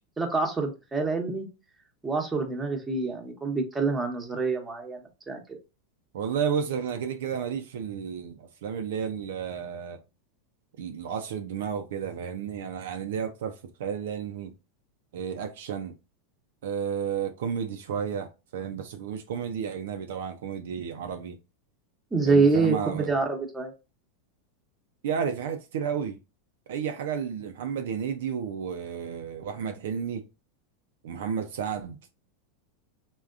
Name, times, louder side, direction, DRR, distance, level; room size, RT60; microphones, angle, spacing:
voice 1, 0.2-1.5 2.0-5.4 22.1-23.7, right 4 dB, 15° right, 0.9 m, -26 dB
voice 2, 6.1-10.0 10.8-14.5 15.1-15.9 16.6-21.4 22.2-23.1 25.0-26.2 26.7-30.2 31.0-32.1, right 7 dB, 75° right, 0.4 m, -32 dB
3.4 x 2.2 x 2.4 m
hypercardioid pair, 105°, 0 cm